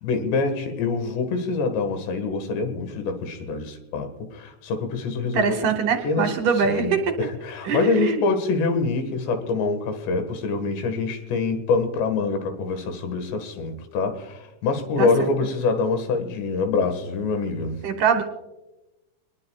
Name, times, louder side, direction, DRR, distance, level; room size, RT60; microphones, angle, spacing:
voice 1, 0.0-5.7 6.0-6.3 6.7-17.8, left 4 dB, 90° left, 7 dB, 3.9 m, -25 dB
voice 2, 5.3-7.0 7.7-8.2 15.0-15.1 17.8-18.2, right 6 dB, 70° right, 6 dB, 2.1 m, -22 dB
25.5 x 20.5 x 2.4 m, 1.0 s
omnidirectional pair, 4.8 m